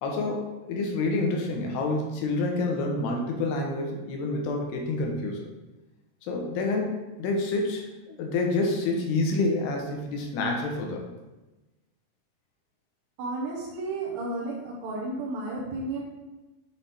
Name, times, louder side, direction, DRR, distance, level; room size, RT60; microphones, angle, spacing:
voice 1, 0.0-5.5 6.3-11.0, left 2 dB, 85° left, 1 dB, 3.0 m, -28 dB
voice 2, 13.2-16.0, right 2 dB, 70° right, -5 dB, 1.7 m, -32 dB
7.6 x 3.4 x 4.2 m, 1.1 s
omnidirectional pair, 4.7 m